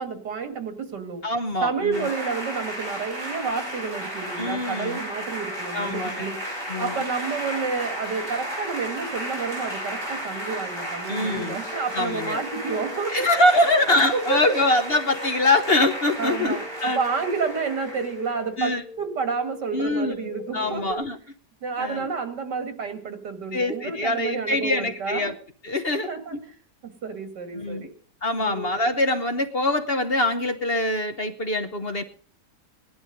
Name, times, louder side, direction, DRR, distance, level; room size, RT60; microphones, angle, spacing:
voice 1, 0.0-1.2 1.6-6.4 6.8-13.3 14.1-14.6 16.2-21.0 21.6-25.3 25.9-26.5 26.8-27.9 28.4-28.7, right 5 dB, 80° right, 7 dB, 2.7 m, -30 dB
voice 2, 1.2-2.1 4.4-5.0 5.7-6.3 6.7-6.9 11.1-11.6 11.9-12.4 13.1-17.0 18.6-18.8 19.7-21.2 21.8-22.1 23.5-25.3 25.6-26.1 27.5-27.9 28.2-32.0, left 2 dB, 40° left, 7 dB, 1.0 m, -24 dB
sound 1, 1.9-18.4, equal, 30° right, 5.0 m, -34 dB
sound 2, 11.4-20.9, left 5 dB, 70° left, 1.7 m, -41 dB
18.0 x 11.5 x 5.3 m, 0.43 s
omnidirectional pair, 1.8 m